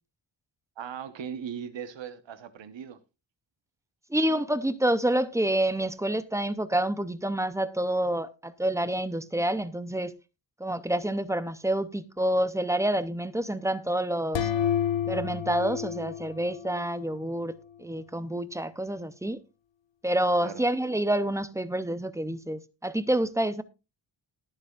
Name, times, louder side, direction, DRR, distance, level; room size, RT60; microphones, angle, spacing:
voice 1, 0.8-3.0 20.4-20.6, right 8 dB, 90° right, 1.1 m, -38 dB
voice 2, 4.1-10.1 10.6-14.5 15.1-19.4 20.0-23.6, right 1 dB, 5° right, 0.5 m, -28 dB
sound 1, 14.3-17.1, left 9 dB, 90° left, 1.0 m, -30 dB
19.5 x 6.8 x 2.4 m
wide cardioid pair, 165°, 43 cm